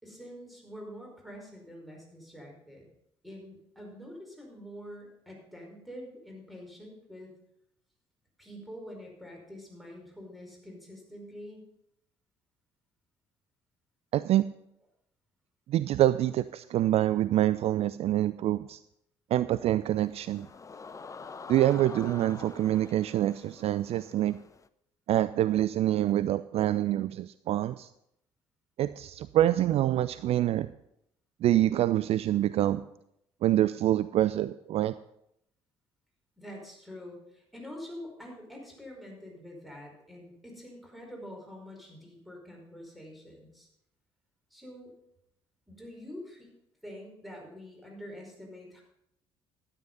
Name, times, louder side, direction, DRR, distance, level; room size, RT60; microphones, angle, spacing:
voice 1, 0.0-2.9 3.2-7.3 8.4-11.7 36.4-43.7 44.5-44.9 45.7-46.5 46.8-48.8, equal, ahead, -1 dB, 5.1 m, -46 dB
voice 2, 14.1-14.4 15.7-18.8 19.3-20.5 21.5-24.4 25.1-27.9 28.8-30.7 31.4-32.8 33.4-34.9, right 13 dB, 45° right, 14 dB, 0.4 m, -26 dB
sound 1, 19.9-24.7, left 4 dB, 25° left, 0.5 m, -46 dB
12.5 x 9.0 x 5.4 m, 0.78 s
figure-of-eight pair, 50°, 14 cm